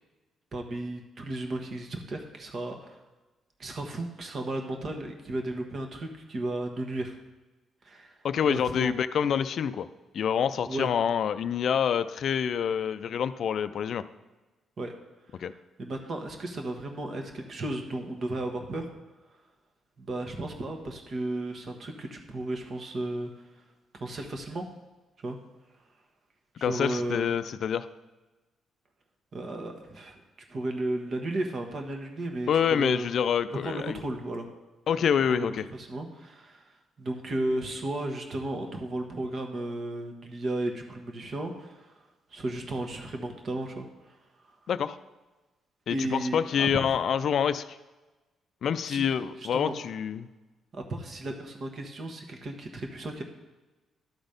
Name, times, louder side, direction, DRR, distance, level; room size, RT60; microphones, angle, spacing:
voice 1, 0.5-3.0 3.6-7.2 7.8-8.2 8.4-8.9 10.7-10.9 14.8-14.9 15.5-18.9 20.0-23.3 23.9-24.6 25.2-25.4 26.6-27.4 29.3-30.2 30.5-33.1 33.5-34.5 35.3-36.6 37.0-41.9 42.3-44.2 45.9-46.9 48.8-49.7 50.7-53.2, right 1 dB, 50° right, 3 dB, 1.3 m, -34 dB
voice 2, 8.2-9.9 10.1-14.0 15.4-15.5 26.6-27.9 32.5-34.0 34.9-35.6 44.7-45.0 45.9-47.6 48.6-50.3, left 8 dB, 60° left, 13 dB, 0.4 m, -27 dB
12.0 x 4.1 x 5.1 m, 1.2 s
cardioid pair, 90°, 0 cm